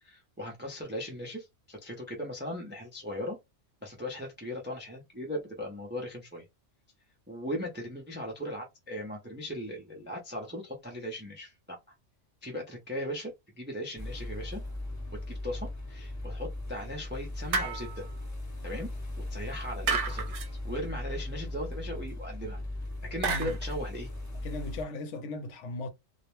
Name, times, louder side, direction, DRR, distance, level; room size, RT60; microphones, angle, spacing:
voice 1, 0.0-3.4 3.8-6.4 7.3-11.8 12.4-14.6 15.3-18.1 18.6-18.9 19.3-20.3 20.6-22.6 23.0-24.1, equal, 15° right, 0.3 m, -38 dB
sound 1, 14.0-24.8, left 1 dB, 20° left, 0.7 m, -38 dB
sound 2, 17.5-18.1 19.9-20.5 23.2-23.7, right 4 dB, 70° right, 0.8 m, -31 dB
voice 2, 23.2-23.6 24.3-25.9, left 2 dB, 75° left, 0.9 m, -37 dB
2.3 x 2.1 x 3.0 m
omnidirectional pair, 1.2 m